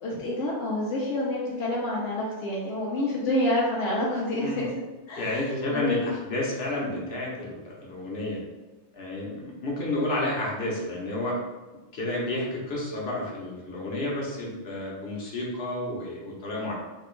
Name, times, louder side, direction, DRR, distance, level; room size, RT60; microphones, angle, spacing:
voice 1, 0.0-4.7 5.1-5.4 5.7-6.1, left 1 dB, 80° left, -5 dB, 1.1 m, -28 dB
voice 2, 5.2-8.4 8.9-11.4 11.9-16.7, left 1 dB, 60° left, -4 dB, 1.2 m, -31 dB
3.4 x 3.0 x 3.1 m, 1.2 s
omnidirectional pair, 1.2 m